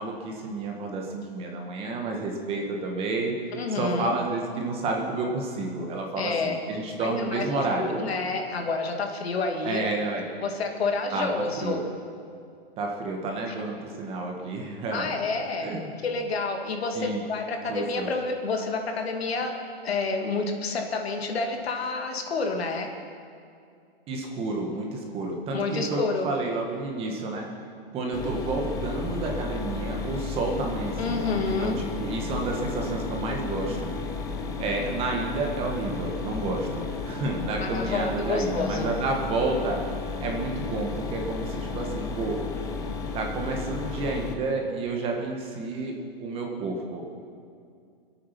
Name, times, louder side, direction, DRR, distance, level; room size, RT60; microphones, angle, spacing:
voice 1, 0.0-3.3 3.7-8.1 9.6-10.3 11.1-11.3 11.6-11.8 12.8-15.2 15.6-15.9 16.9-17.2 17.7-18.1 24.1-27.5 27.9-33.9 34.6-39.8 40.2-42.4 43.1-45.9 46.2-47.0, right 3 dB, 20° right, 1 dB, 1.5 m, -30 dB
voice 2, 3.5-4.1 6.2-6.6 7.0-9.9 10.4-11.8 13.5-13.6 14.9-15.7 16.0-22.9 25.5-26.3 31.0-31.8 37.6-38.9, left 3 dB, 80° left, 3 dB, 2.3 m, -29 dB
Mechanisms, 28.1-44.3, left 4 dB, 10° left, 0.7 m, -33 dB
26.0 x 8.7 x 5.8 m, 2.4 s
hypercardioid pair, 155°, 31 cm